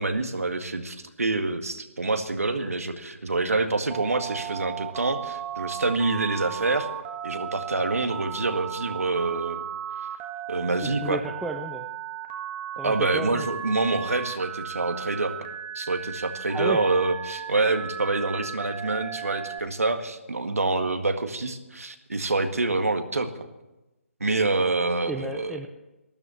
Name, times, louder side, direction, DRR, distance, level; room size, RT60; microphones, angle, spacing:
voice 1, 0.0-6.9 7.2-9.6 10.5-11.2 12.8-15.3 15.7-23.5 24.2-25.6, right 3 dB, 90° right, 7 dB, 1.8 m, -26 dB
Telephone, 3.9-19.6, right 10 dB, 20° right, 1.5 m, -36 dB
voice 2, 10.8-11.9 12.8-13.5 16.5-16.8 25.1-25.7, right 1 dB, ahead, 2 dB, 0.7 m, -33 dB
13.0 x 13.0 x 7.6 m, 1.0 s
figure-of-eight pair, 150°, 8 cm